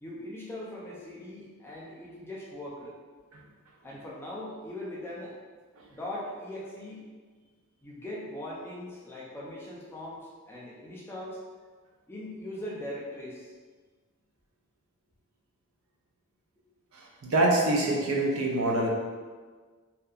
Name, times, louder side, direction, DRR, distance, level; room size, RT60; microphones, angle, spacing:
voice 1, 0.0-3.0 3.8-5.3 5.9-7.0 7.8-11.4 12.1-13.5, left 1 dB, 10° left, -6 dB, 0.4 m, -40 dB
voice 2, 16.9-18.9, right 2 dB, 85° right, -1 dB, 0.5 m, -26 dB
2.7 x 2.2 x 2.4 m, 1.5 s
head